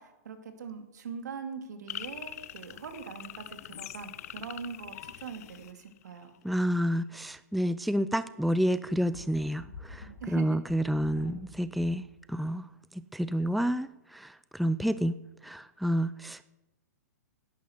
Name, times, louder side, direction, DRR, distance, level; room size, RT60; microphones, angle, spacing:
voice 1, 0.0-6.3 10.2-10.6, right 5 dB, 75° right, 6 dB, 2.3 m, -42 dB
sound 1, 1.9-6.4, left 13 dB, 60° left, 0.7 m, -43 dB
voice 2, 6.4-12.0 12.3-12.7 12.9-15.2 15.4-16.4, equal, ahead, 14 dB, 0.3 m, -29 dB
sound 2, 8.9-12.2, left 2 dB, 85° left, 2.5 m, -49 dB
11.0 x 10.5 x 7.8 m, 1.0 s
hypercardioid pair, 135°, 9 cm